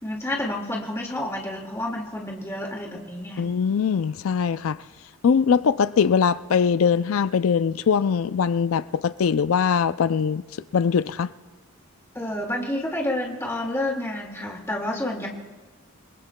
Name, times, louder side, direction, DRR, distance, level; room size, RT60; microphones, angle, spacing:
voice 1, 0.0-3.4 12.1-15.3, left 1 dB, 10° left, 1.9 m, -29 dB
voice 2, 3.4-4.8 5.2-10.4 10.7-11.3, left 6 dB, 65° left, 0.4 m, -21 dB
29.0 x 20.5 x 2.2 m
head